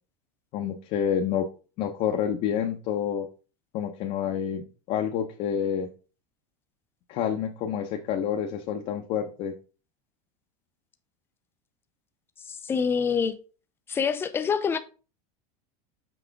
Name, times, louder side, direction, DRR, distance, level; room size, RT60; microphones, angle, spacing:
voice 1, 0.5-1.5 1.8-3.3 3.7-5.9 7.1-9.5, left 8 dB, 40° left, 0.7 m, -28 dB
voice 2, 12.5-13.3 13.9-14.8, left 6 dB, 10° left, 0.5 m, -26 dB
6.1 x 4.9 x 3.4 m
supercardioid pair, 155°, 18 cm